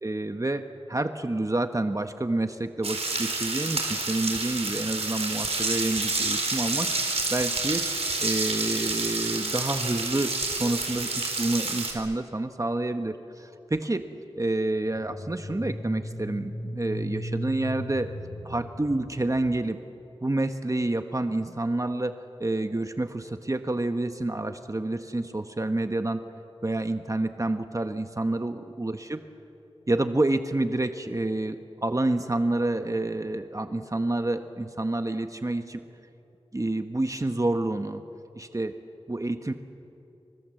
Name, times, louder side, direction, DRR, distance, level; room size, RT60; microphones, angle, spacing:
voice 1, 0.0-6.9 7.3-7.9 8.2-14.0 14.4-18.1 18.4-19.8 20.2-22.1 22.4-26.2 26.6-29.2 29.9-35.8 36.5-38.0 38.3-38.8 39.1-39.5, right 2 dB, 30° right, 7 dB, 1.1 m, -28 dB
sound 1, 2.8-11.9, right 3 dB, 80° right, 4.3 m, -29 dB
sound 2, 14.9-19.7, equal, 40° left, 2.9 m, -37 dB
29.0 x 25.0 x 7.7 m, 2.7 s
wide cardioid pair, 65°, 10 cm